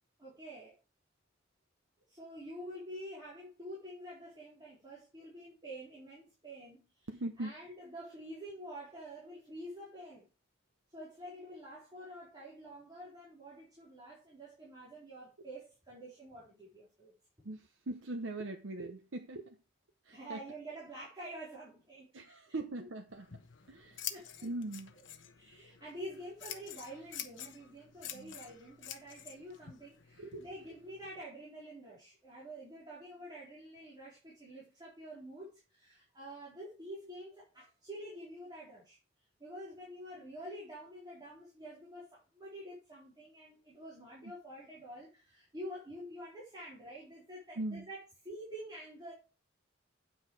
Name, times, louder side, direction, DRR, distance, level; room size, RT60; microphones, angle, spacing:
voice 1, 0.2-0.8 2.1-7.1 7.4-10.3 10.9-17.1 20.1-22.4 24.1-24.5 25.4-39.0 39.4-49.1, right 1 dB, 20° right, 4.2 m, -48 dB
voice 2, 7.1-7.5 17.4-19.6 20.0-20.4 22.1-23.4 23.7-24.1 24.4-24.9 28.1-28.3 30.2-30.4 44.2-44.3 47.6-47.9, right 2 dB, 85° right, 0.9 m, -41 dB
Scissors, 23.1-31.2, left 10 dB, 70° left, 1.1 m, -48 dB
9.4 x 6.4 x 4.8 m
head